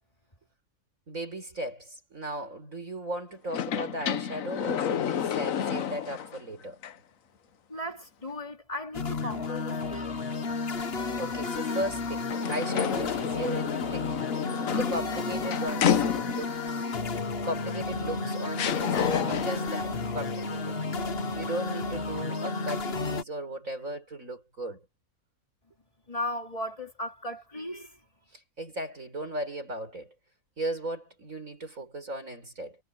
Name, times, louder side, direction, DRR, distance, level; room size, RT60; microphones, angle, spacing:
voice 1, 1.1-6.8 11.2-14.2 14.7-16.9 17.4-20.8 21.3-24.8 28.3-30.1 30.6-32.8, right 1 dB, 65° right, 6.5 m, -36 dB
sound 1, 3.5-6.4 6.8-6.9 12.3-16.6 17.8-17.9 18.6-19.7, left 8 dB, 70° left, 1.3 m, -30 dB
voice 2, 7.7-10.2 26.1-28.0, left 1 dB, 25° left, 2.9 m, -36 dB
sound 2, 8.9-23.2, left 3 dB, 45° left, 1.4 m, -32 dB
omnidirectional pair, 1.5 m